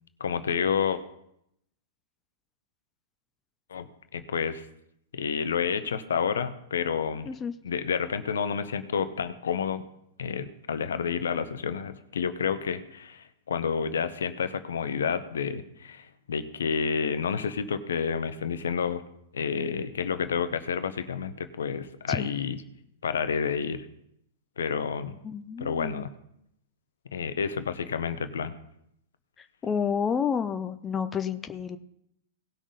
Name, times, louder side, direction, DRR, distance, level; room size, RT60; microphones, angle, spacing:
voice 1, 0.2-1.0 3.7-3.9 4.1-4.6 5.1-7.3 7.6-9.8 10.2-19.0 19.3-22.5 23.0-23.9 24.6-25.1 25.6-26.1 27.1-28.5, left 6 dB, 70° left, 11 dB, 0.8 m, -29 dB
voice 2, 25.2-26.1 29.4-31.8, left 7 dB, 20° left, 10 dB, 0.6 m, -30 dB
18.0 x 6.1 x 4.0 m, 0.76 s
figure-of-eight pair, 100°, 0 cm